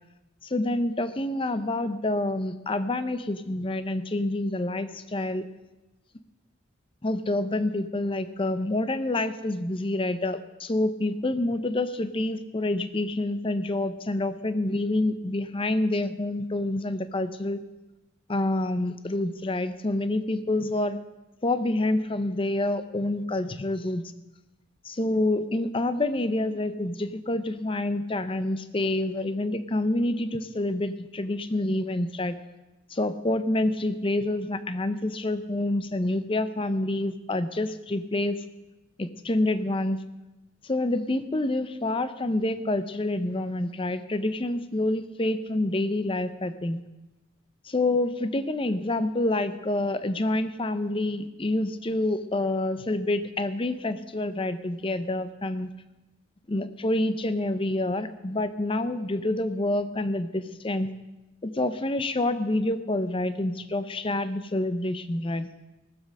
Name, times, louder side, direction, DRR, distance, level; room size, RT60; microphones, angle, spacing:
voice 1, 0.4-5.4 7.0-17.6 18.3-21.0 21.4-24.0 24.8-32.4 32.9-38.4 39.0-40.0 40.6-46.8 47.6-55.7 56.5-60.9 61.4-65.5, left 2 dB, 25° left, 11 dB, 0.6 m, -27 dB
18.0 x 7.4 x 6.5 m, 1.0 s
head